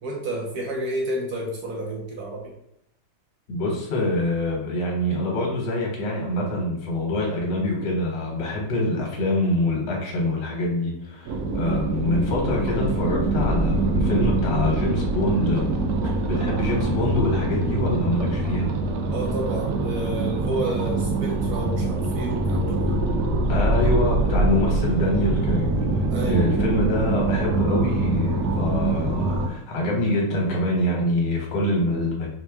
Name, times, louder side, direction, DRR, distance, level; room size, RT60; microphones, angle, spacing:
voice 1, 0.0-2.5 19.1-23.2 26.1-26.5, right 1 dB, 65° right, -1 dB, 1.0 m, -30 dB
voice 2, 3.5-15.7 16.0-18.7 23.5-32.3, left 1 dB, 65° left, -2 dB, 1.7 m, -25 dB
sound 1, 11.3-29.5, right 2 dB, 90° right, 0.8 m, -24 dB
4.4 x 2.1 x 3.4 m, 0.80 s
omnidirectional pair, 2.3 m